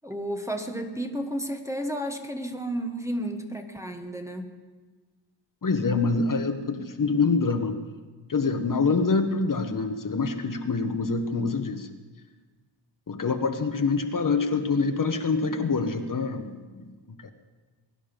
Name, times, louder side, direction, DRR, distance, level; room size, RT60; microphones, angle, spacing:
voice 1, 0.0-4.5, right 1 dB, 5° right, 3 dB, 1.2 m, -32 dB
voice 2, 5.6-7.8 8.3-11.9 13.1-17.3, left 4 dB, 40° left, 6 dB, 1.2 m, -26 dB
21.0 x 11.0 x 5.2 m, 1.3 s
wide cardioid pair, 100°, 47 cm